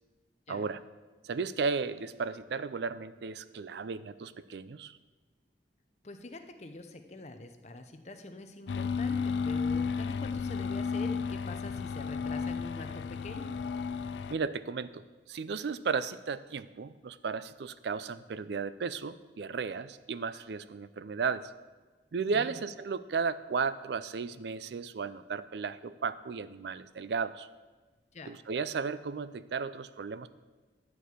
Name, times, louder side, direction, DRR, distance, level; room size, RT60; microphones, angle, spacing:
voice 1, 0.5-0.8 1.2-5.0 14.3-21.5 22.1-27.5 28.3-30.3, right 5 dB, 70° right, 15 dB, 0.4 m, -34 dB
voice 2, 6.0-13.5 22.3-22.6 28.1-28.4, left 2 dB, 40° left, 7 dB, 0.7 m, -45 dB
sound 1, 8.7-14.4, left 5 dB, 80° left, 0.4 m, -33 dB
11.5 x 4.6 x 8.3 m, 1.3 s
head